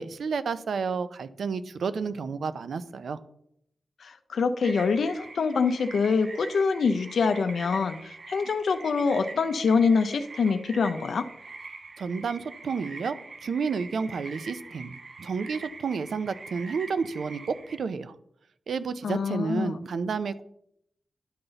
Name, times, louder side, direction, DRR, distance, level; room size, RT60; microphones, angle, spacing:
voice 1, 0.0-3.2 12.0-13.2 13.4-18.2 18.7-20.4, right 5 dB, 80° right, 14 dB, 0.4 m, -31 dB
voice 2, 4.0-11.3 19.0-19.8, left 5 dB, 80° left, 8 dB, 0.5 m, -25 dB
sound 1, 4.6-17.8, right 3 dB, 55° right, 1.0 m, -44 dB
11.0 x 4.0 x 3.9 m, 0.74 s
cardioid pair, 65°, 0 cm